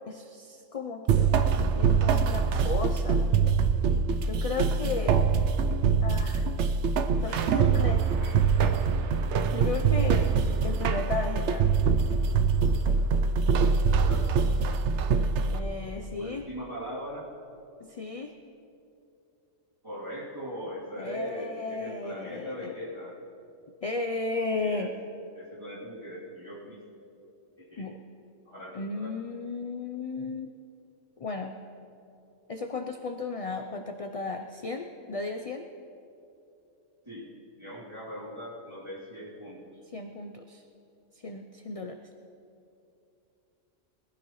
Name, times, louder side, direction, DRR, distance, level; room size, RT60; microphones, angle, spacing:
voice 1, 0.1-3.2 4.2-5.2 6.0-6.5 7.2-8.0 9.5-10.3 10.6-11.7 15.5-16.5 17.8-18.4 21.0-22.8 23.8-24.9 27.8-28.0 28.7-30.5 31.2-31.5 32.5-35.7 39.9-40.6 41.2-42.0, left 3 dB, 40° left, 5 dB, 0.5 m, -34 dB
sound 1, 1.1-15.6, right 5 dB, 70° right, 0.9 m, -24 dB
voice 2, 7.3-8.5 13.7-14.3 16.1-17.3 19.8-23.2 24.5-24.9 25.3-26.8 27.6-27.9 28.4-29.1 37.0-37.2 37.6-39.8, equal, 20° right, -9 dB, 3.0 m, -40 dB
21.0 x 15.5 x 3.1 m, 2.7 s
omnidirectional pair, 1.3 m